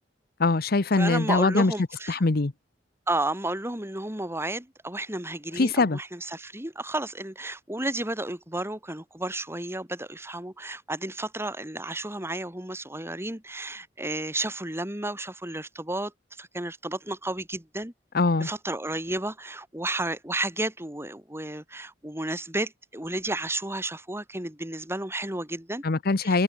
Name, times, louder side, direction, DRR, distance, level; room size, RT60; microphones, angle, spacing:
voice 1, 0.4-1.7 2.1-2.5 5.6-6.0 18.1-18.5 25.8-26.4, left 3 dB, 55° left, 0.9 m, -22 dB
voice 2, 0.9-2.2 3.1-16.1 16.4-17.9 18.4-25.8 26.2-26.4, right 2 dB, 15° right, 6.3 m, -32 dB
head